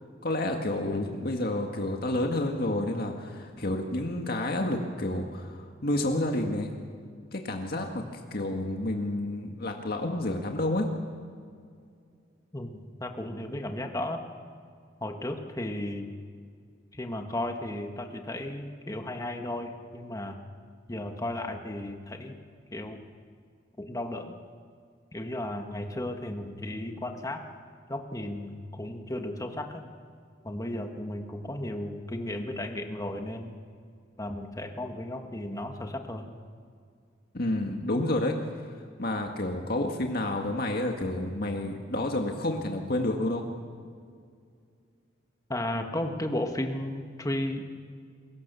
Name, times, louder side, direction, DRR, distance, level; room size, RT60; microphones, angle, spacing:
voice 1, 0.2-6.7 7.3-10.9 37.3-38.4 39.0-43.4, left 1 dB, 50° left, 2 dB, 1.9 m, -29 dB
voice 2, 12.5-14.2 15.0-16.1 16.9-20.4 20.9-22.4 22.7-23.0 23.8-24.3 25.1-27.4 27.9-29.8 30.4-33.5 34.2-36.3 45.5-47.8, left 1 dB, 20° left, 4 dB, 1.6 m, -34 dB
28.0 x 22.5 x 7.0 m, 2.2 s
head